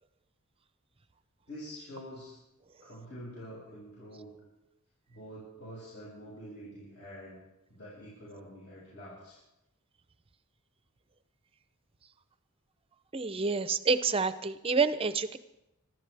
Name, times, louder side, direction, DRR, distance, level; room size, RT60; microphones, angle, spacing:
voice 1, 1.5-2.4 2.8-4.3 5.1-7.4 7.7-9.4, equal, 55° left, -8 dB, 6.4 m, -46 dB
voice 2, 13.1-15.4, right 4 dB, 25° right, 12 dB, 0.6 m, -28 dB
25.5 x 13.0 x 3.4 m, 0.91 s
head